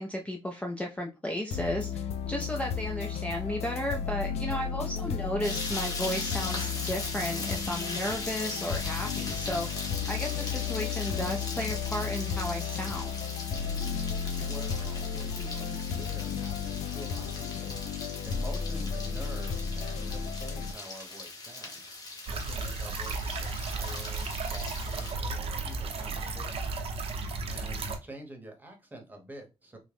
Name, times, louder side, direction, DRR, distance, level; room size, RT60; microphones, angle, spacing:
voice 1, 0.0-9.7 10.1-13.2, equal, 10° left, 0.4 m, -34 dB
sound 1, 1.5-20.7, left 7 dB, 85° left, 0.4 m, -34 dB
voice 2, 4.7-5.2 14.3-17.7 18.2-21.9 22.3-26.7 27.5-29.8, right 1 dB, 15° right, 1.0 m, -47 dB
sound 2, 5.4-25.1, left 3 dB, 35° left, 1.1 m, -39 dB
sound 3, 22.3-28.0, right 3 dB, 65° right, 0.6 m, -34 dB
3.5 x 2.1 x 3.4 m
cardioid pair, 115°, 11 cm